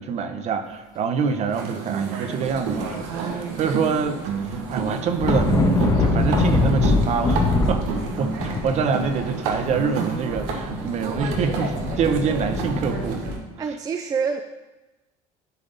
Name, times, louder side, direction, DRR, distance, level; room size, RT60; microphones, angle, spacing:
voice 1, 0.0-7.8 8.2-13.2, right 5 dB, 45° right, 8 dB, 0.8 m, -26 dB
sound 1, 1.5-13.4, right 5 dB, 80° right, 1.2 m, -30 dB
sound 2, 2.7-3.5 3.8-13.3, left 3 dB, 25° left, 1.0 m, -24 dB
voice 2, 13.6-14.4, right 5 dB, 25° right, 7 dB, 0.4 m, -26 dB
10.5 x 3.6 x 4.0 m, 1.1 s
cardioid pair, 120°, 15 cm